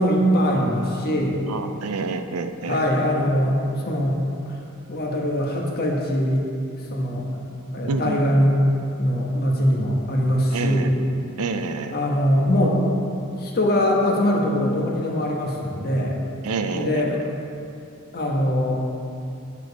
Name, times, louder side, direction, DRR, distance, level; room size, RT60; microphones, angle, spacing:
voice 1, 0.0-1.4 2.6-4.2 4.5-4.6 4.9-6.4 6.9-7.3 7.7-8.6 9.0-10.9 11.9-12.9 13.3-16.2 16.7-17.2 18.1-18.8, equal, 45° left, -1 dB, 1.3 m, -22 dB
voice 2, 1.5-2.8 7.9-8.5 10.5-10.9 11.4-11.9 16.4-17.2, right 4 dB, 80° right, 8 dB, 0.5 m, -28 dB
9.2 x 7.0 x 4.1 m, 2.7 s
head